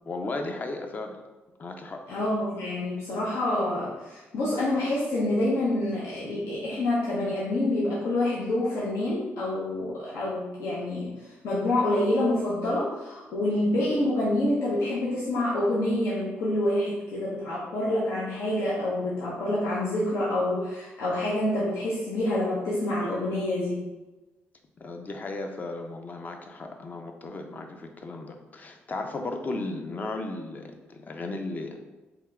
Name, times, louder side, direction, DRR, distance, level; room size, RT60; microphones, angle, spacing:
voice 1, 0.1-1.2 1.6-2.0 24.8-31.8, left 2 dB, 35° left, 4 dB, 0.5 m, -35 dB
voice 2, 2.1-23.9, left 1 dB, 85° left, -7 dB, 0.8 m, -27 dB
3.4 x 2.9 x 3.4 m, 1.1 s
cardioid pair, 100°, 5 cm